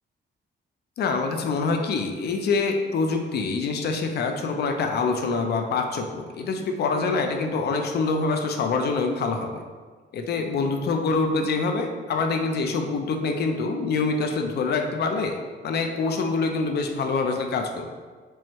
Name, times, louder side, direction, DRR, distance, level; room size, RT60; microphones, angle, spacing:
voice 1, 1.0-9.6 10.1-15.4 15.6-17.9, left 4 dB, 55° left, 4 dB, 0.5 m, -25 dB
4.6 x 2.1 x 4.4 m, 1.5 s
cardioid pair, 160°, 20 cm